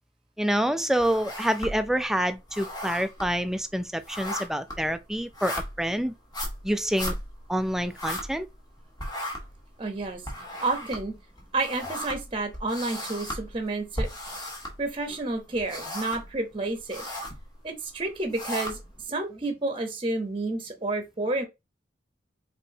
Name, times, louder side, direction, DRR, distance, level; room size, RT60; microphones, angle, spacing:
voice 1, 0.4-6.1 6.6-7.1 7.5-8.5, equal, ahead, 0.3 m, -27 dB
sound 1, 1.0-2.0 2.3-8.7 9.0-15.2 15.5-16.4 16.7-17.4 18.0-19.0, equal, 20° left, 1.3 m, -36 dB
voice 2, 9.8-10.2 10.6-11.2 11.5-14.1 14.8-17.0 17.6-21.4, right 2 dB, 30° right, 0.8 m, -30 dB
4.8 x 3.3 x 2.7 m
head